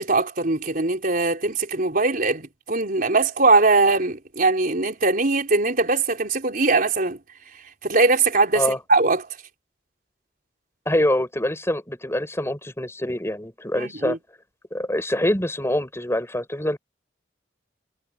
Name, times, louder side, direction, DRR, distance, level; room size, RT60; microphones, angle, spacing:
voice 1, 0.0-7.2 7.8-9.3 13.8-14.2, right 3 dB, 50° right, 4.3 m, -21 dB
voice 2, 10.8-14.2 14.7-16.8, left 1 dB, 15° left, 6.4 m, -25 dB
head